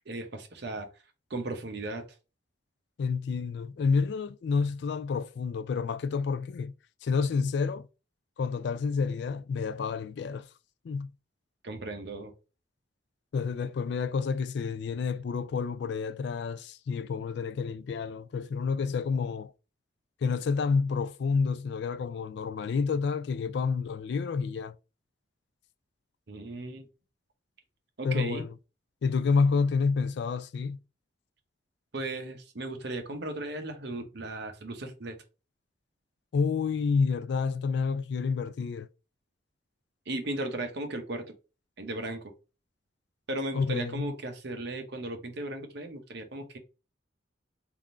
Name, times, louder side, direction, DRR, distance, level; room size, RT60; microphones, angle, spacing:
voice 1, 0.1-0.9 1.3-2.0 11.6-12.3 26.3-26.9 28.0-28.4 31.9-35.2 40.1-41.3 41.8-42.3 43.3-46.6, right 2 dB, 60° right, 0.9 m, -36 dB
voice 2, 3.0-6.7 7.0-7.9 8.4-10.5 10.8-11.1 13.3-19.5 20.2-24.7 28.0-28.5 29.0-30.8 36.3-38.9 43.5-44.1, left 5 dB, 60° left, 0.3 m, -29 dB
3.6 x 2.5 x 4.3 m
head